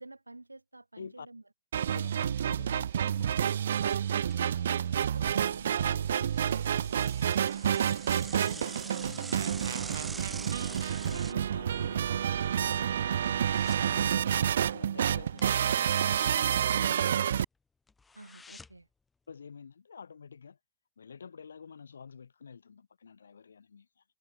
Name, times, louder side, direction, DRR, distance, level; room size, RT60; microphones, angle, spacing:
voice 1, 0.0-1.4 1.7-2.1 4.3-7.6 18.1-18.9, right 2 dB, 85° right, 2.5 m, -50 dB
voice 2, 1.0-1.3 1.9-3.9 8.4-13.5 13.8-14.4 14.7-17.3 19.3-20.6 21.0-24.0, left 6 dB, 70° left, 6.4 m, -49 dB
sound 1, 1.7-17.4, right 9 dB, 65° right, 0.9 m, -29 dB
Bicycle / Mechanisms, 2.1-2.4 2.8-2.9 3.1-3.2 3.9-5.0 5.4-11.3, right 4 dB, 15° right, 1.8 m, -45 dB
sound 2, 13.2-14.0 14.2-14.5 14.8-14.9 15.3-17.2 17.5-17.6 17.9-19.0 19.3-19.4, left 4 dB, 10° left, 2.6 m, -55 dB
figure-of-eight pair, 90°, 0 cm